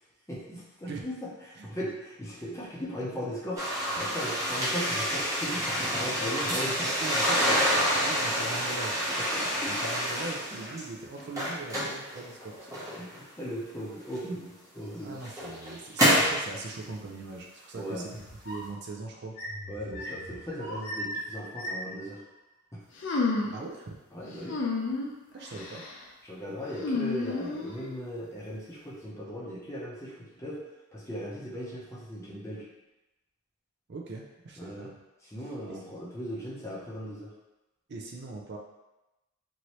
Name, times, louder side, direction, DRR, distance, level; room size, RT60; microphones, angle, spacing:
voice 1, 0.3-6.9 9.1-9.9 10.5-10.6 13.0-15.1 17.7-18.1 19.7-22.2 22.7-22.8 24.1-24.6 25.5-25.7 26.2-30.6 30.9-32.7 34.6-34.9 35.2-37.3, equal, 15° left, -5 dB, 0.6 m, -38 dB
sound 1, 3.6-10.8 11.2-13.2 14.1-14.2 14.9-16.4, equal, 15° right, 0.9 m, -28 dB
voice 2, 6.8-9.0 9.6-12.7 15.0-18.1 18.5-19.4 23.5-24.0 25.3-25.8 33.9-34.9 35.7-35.8 37.9-38.6, right 3 dB, 50° right, -1 dB, 0.4 m, -40 dB
sound 2, 18.1-18.8 19.3-22.0, equal, 80° left, 1.0 m, -38 dB
sound 3, 23.0-23.6 24.4-25.1 25.5-25.9 26.7-27.9, left 3 dB, 60° left, 0.5 m, -30 dB
2.9 x 2.6 x 3.0 m, 1.0 s
head